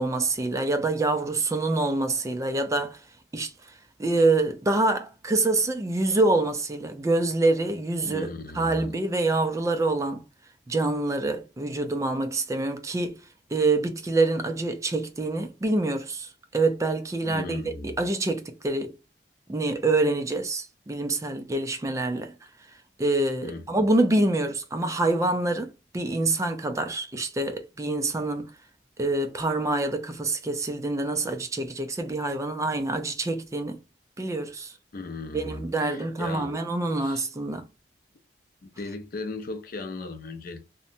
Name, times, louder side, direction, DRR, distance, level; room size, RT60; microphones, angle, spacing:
voice 1, 0.0-3.0 3.3-3.5 4.0-8.3 8.6-10.2 10.7-13.2 13.5-18.9 19.5-22.3 23.0-28.5 29.0-33.8 34.2-34.7 35.3-37.7, right 2 dB, 20° right, 0.4 m, -26 dB
voice 2, 8.0-9.0 17.2-18.0 23.4-23.7 34.9-36.5 36.9-37.3 38.6-40.6, left 3 dB, 55° left, 0.5 m, -37 dB
2.8 x 2.1 x 2.5 m
head